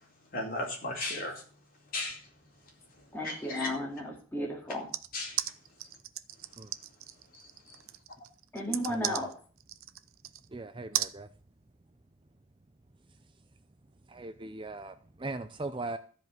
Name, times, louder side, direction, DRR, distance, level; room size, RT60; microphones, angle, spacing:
voice 1, 0.3-1.4 1.9-2.2 3.2-3.7 5.1-5.4 7.3-7.4, left 2 dB, 40° left, -1 dB, 4.4 m, -35 dB
voice 2, 3.1-4.9 8.5-9.3, left 1 dB, 10° left, -1 dB, 2.4 m, -34 dB
sound 1, 4.9-10.5 10.9-11.1, right 13 dB, 75° right, 0.7 m, -36 dB
voice 3, 8.9-9.3 10.5-11.3 14.1-16.0, right 2 dB, 25° right, 10 dB, 0.5 m, -39 dB
13.5 x 5.3 x 9.2 m, 0.42 s
head